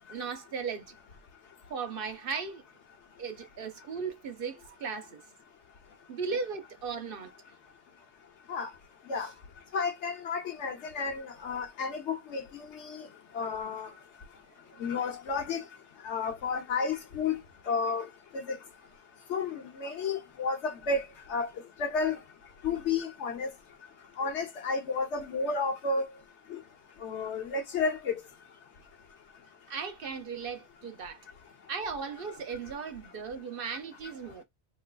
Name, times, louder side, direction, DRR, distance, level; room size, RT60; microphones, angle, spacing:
voice 1, 0.1-1.0 1.7-2.6 3.2-5.2 6.1-7.3 9.2-9.3 14.7-14.8 29.7-31.2 31.7-34.4, right 5 dB, 60° right, 0.8 m, -37 dB
voice 2, 9.7-13.1 13.3-13.9 14.8-15.6 16.0-17.4 17.7-18.1 18.3-18.6 19.3-21.0 21.3-21.5 21.8-22.2 22.6-23.5 24.2-26.0 26.5-26.6 27.0-28.1, left 4 dB, 85° left, 1.1 m, -31 dB
3.5 x 3.1 x 2.2 m
omnidirectional pair, 1.1 m